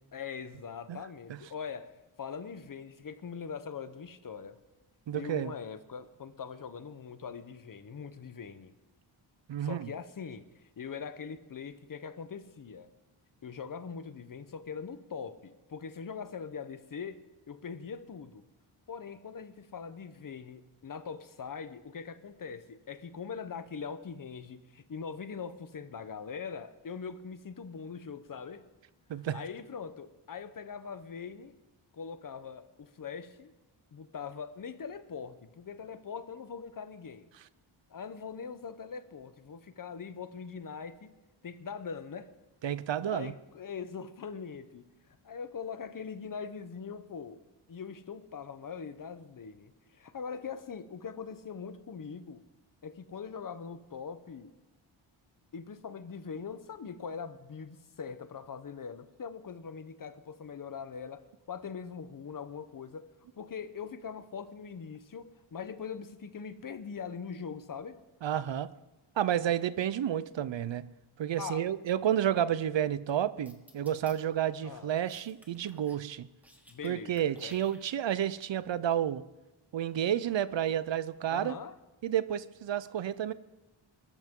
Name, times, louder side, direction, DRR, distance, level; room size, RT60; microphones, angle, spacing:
voice 1, 0.1-4.6 5.1-8.7 9.6-10.5 10.8-12.9 13.4-18.4 18.9-28.6 29.3-31.5 31.9-33.5 33.9-37.3 37.9-41.1 41.4-42.3 43.0-44.9 45.2-47.4 47.7-52.4 52.8-54.5 55.5-63.1 63.4-68.0 71.4-71.7 74.6-74.9 76.7-77.6 81.3-81.8, left 6 dB, 40° left, 0.9 m, -42 dB
voice 2, 5.1-5.5 9.5-9.9 29.1-29.4 42.6-43.3 68.2-68.7 69.2-70.9 71.2-76.3 76.8-79.2 79.7-81.6 82.0-83.3, right 10 dB, 65° right, 0.7 m, -31 dB
sound 1, 73.5-74.1 75.1-76.0 76.3-76.9 77.2-78.2, equal, 5° right, 1.6 m, -56 dB
21.5 x 13.0 x 3.7 m
wide cardioid pair, 160°, 49 cm